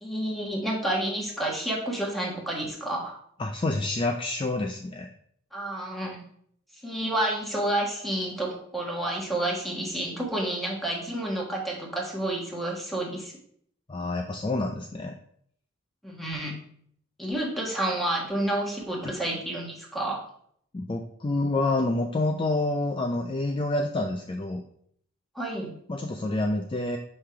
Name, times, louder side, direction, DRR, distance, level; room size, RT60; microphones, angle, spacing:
voice 1, 0.0-3.1 5.5-6.2 6.8-13.3 16.0-16.6 17.2-20.2 25.3-25.7, right 1 dB, ahead, -2 dB, 1.4 m, -30 dB
voice 2, 3.4-5.1 13.9-15.1 20.7-24.6 25.9-27.0, left 2 dB, 25° left, 3 dB, 0.4 m, -28 dB
5.7 x 3.3 x 5.7 m, 0.65 s
head